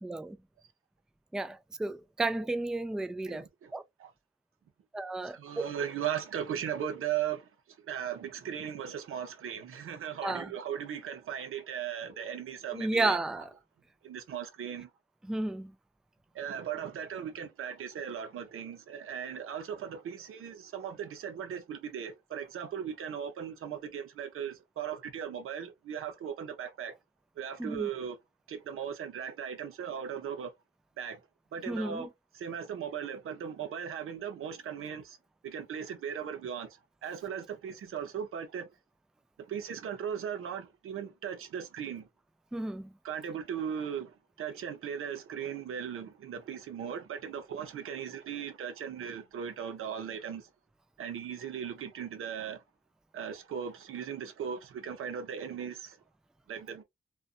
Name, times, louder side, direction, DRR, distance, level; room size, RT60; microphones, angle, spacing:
voice 1, 0.0-0.4 1.3-3.8 4.9-5.6 10.2-10.5 12.7-13.5 15.2-15.7 27.6-27.9 31.7-32.1 42.5-42.9, right 2 dB, 5° right, 0.3 m, -33 dB
voice 2, 3.2-3.7 4.0-4.1 5.2-7.5 7.8-13.2 14.0-14.9 16.3-27.0 27.4-28.2 28.5-30.5 31.0-31.2 31.5-32.1 32.3-35.2 35.4-38.7 39.5-42.1 43.0-50.5 51.0-52.6 53.1-56.0 56.5-56.8, right 8 dB, 85° right, 0.6 m, -38 dB
2.5 x 2.3 x 2.3 m
cardioid pair, 50°, 21 cm